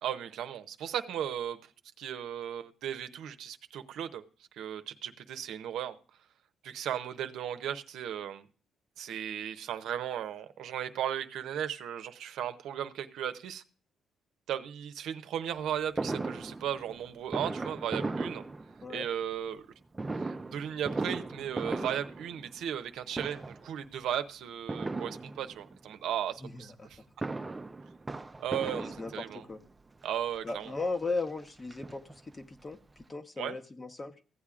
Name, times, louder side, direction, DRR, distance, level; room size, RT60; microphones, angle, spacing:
voice 1, 0.0-1.7 2.0-4.2 4.5-6.0 6.6-8.5 9.0-13.6 14.5-18.5 18.9-19.7 20.2-27.0 28.4-29.4 30.0-30.7 33.4-33.6, right 10 dB, 80° right, 0.7 m, -36 dB
Fireworks, 16.0-19.2 19.9-22.9 23.1-23.7 24.7-25.8 26.9-29.6 30.4-30.5 30.7-30.8 31.2-32.4 32.7-32.8 33.0-33.1, right 3 dB, 20° right, 0.6 m, -37 dB
voice 2, 26.4-26.9 28.6-29.6 30.4-34.1, left 3 dB, 25° left, 1.0 m, -37 dB
15.5 x 8.3 x 2.5 m
cardioid pair, 90°, 0 cm